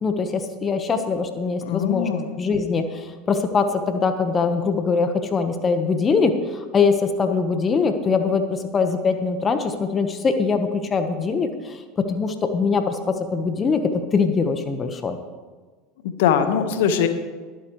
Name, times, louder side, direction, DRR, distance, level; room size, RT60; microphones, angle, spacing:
voice 1, 0.0-2.1 2.4-13.8 14.1-15.2, left 5 dB, 30° left, 7 dB, 1.3 m, -22 dB
voice 2, 1.6-2.3 16.0-17.1, left 8 dB, 70° left, 8 dB, 1.4 m, -21 dB
23.0 x 8.2 x 3.2 m, 1.4 s
hypercardioid pair, 80°, 0 cm